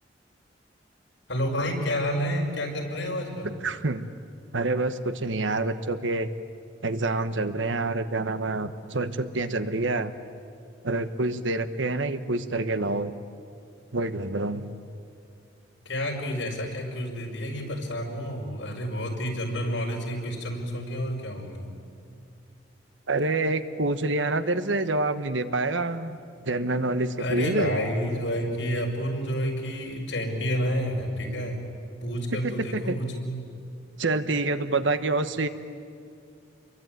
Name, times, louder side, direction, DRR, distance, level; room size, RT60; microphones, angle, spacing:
voice 1, 1.3-3.5 15.9-21.7 27.2-31.6 32.0-33.4, equal, 75° left, 0 dB, 5.6 m, -29 dB
voice 2, 3.4-4.1 4.5-6.3 6.8-10.1 10.8-13.1 13.9-14.7 23.1-26.2 26.5-27.8 32.3-33.0 34.0-35.5, right 2 dB, 85° right, 11 dB, 1.3 m, -27 dB
28.0 x 22.5 x 9.4 m, 2.4 s
head